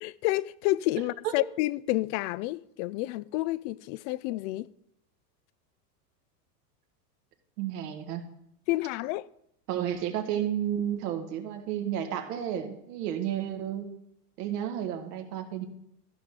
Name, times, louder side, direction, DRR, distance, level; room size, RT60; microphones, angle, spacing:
voice 1, 0.0-4.7 8.7-9.2, left 18 dB, 50° left, 0.5 m, -29 dB
voice 2, 7.6-8.2 9.7-13.9 14.4-15.7, right 10 dB, 75° right, 1.8 m, -32 dB
14.5 x 5.9 x 5.0 m
hypercardioid pair, 110°, 48 cm